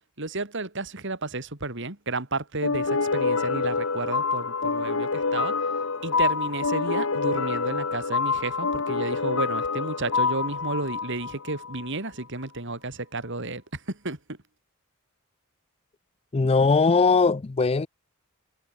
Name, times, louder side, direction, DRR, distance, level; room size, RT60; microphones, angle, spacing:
voice 1, 0.2-5.6 6.0-14.2, right 2 dB, 55° right, 3.1 m, -32 dB
sound 1, 2.6-11.9, left 4 dB, 65° left, 1.2 m, -27 dB
voice 2, 16.3-17.9, left 4 dB, 25° left, 0.4 m, -20 dB
head